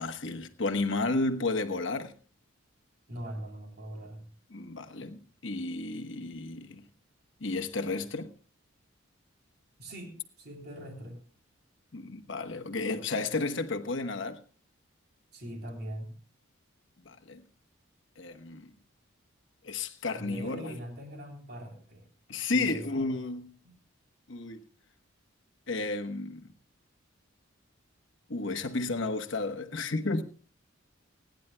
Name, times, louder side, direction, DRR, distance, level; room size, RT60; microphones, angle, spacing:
voice 1, 0.0-2.1 4.5-6.8 7.4-8.3 11.9-14.4 17.0-17.4 18.2-18.7 19.6-20.7 22.3-23.5 24.3-24.6 25.7-26.5 28.3-30.2, left 3 dB, 60° left, 1.1 m, -32 dB
voice 2, 3.1-4.3 9.8-11.2 15.3-16.2 20.2-22.1 22.5-23.1 23.6-23.8, equal, 50° right, 3.5 m, -42 dB
29.5 x 10.5 x 2.2 m
head